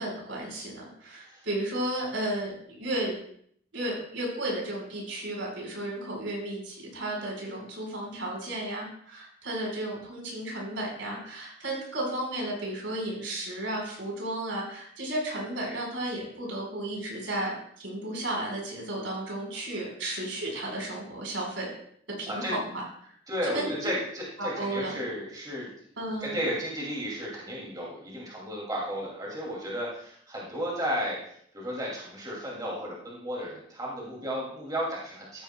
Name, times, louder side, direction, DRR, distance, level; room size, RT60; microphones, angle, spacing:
voice 1, 0.0-2.5 2.8-3.1 3.7-17.5 17.8-21.7 22.2-23.2 23.4-23.9 24.4-24.9 26.0-26.4, right 1 dB, 80° right, -1 dB, 4.4 m, -33 dB
voice 2, 23.3-25.7 26.2-35.4, equal, 20° right, -4 dB, 2.4 m, -34 dB
13.5 x 10.5 x 2.2 m, 0.63 s
head